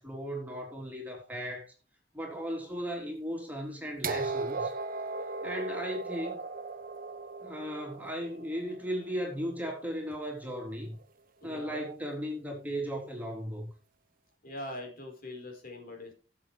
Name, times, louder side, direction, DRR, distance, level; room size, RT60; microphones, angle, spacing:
voice 1, 0.0-1.7 2.1-4.7 5.4-6.4 7.4-11.0 11.4-13.7, equal, 10° right, 3.4 m, -36 dB
sound 1, 4.0-9.9 11.0-11.1, right 3 dB, 50° right, 0.9 m, -37 dB
voice 2, 11.4-11.9 14.4-16.1, left 1 dB, 55° left, 4.5 m, -42 dB
17.5 x 7.5 x 3.4 m
head